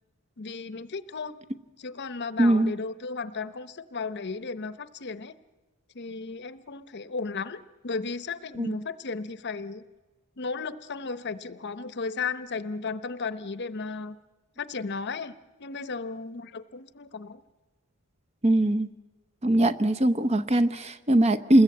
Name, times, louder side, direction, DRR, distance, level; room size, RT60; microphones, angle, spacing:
voice 1, 0.4-1.4 1.8-5.3 5.9-9.8 10.4-14.2 14.6-15.3 15.6-17.4, left 4 dB, 50° left, 13 dB, 0.8 m, -35 dB
voice 2, 2.4-2.7 8.6-8.7 18.4-18.9 19.4-21.6, right 1 dB, 30° right, 10 dB, 0.8 m, -21 dB
27.0 x 21.0 x 8.6 m, 1.2 s
head